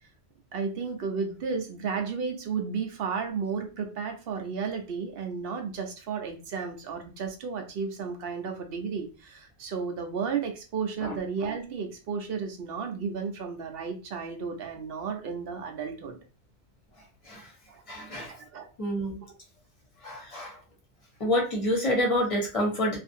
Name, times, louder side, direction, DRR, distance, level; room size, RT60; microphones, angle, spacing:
voice 1, 0.5-16.2 17.7-17.8 18.3-18.7, right 5 dB, 60° right, 4 dB, 0.7 m, -33 dB
voice 2, 17.9-18.3 18.8-19.2 20.0-20.6 21.2-23.0, equal, 30° left, -1 dB, 1.0 m, -28 dB
2.5 x 2.5 x 2.6 m, 0.32 s
omnidirectional pair, 1.2 m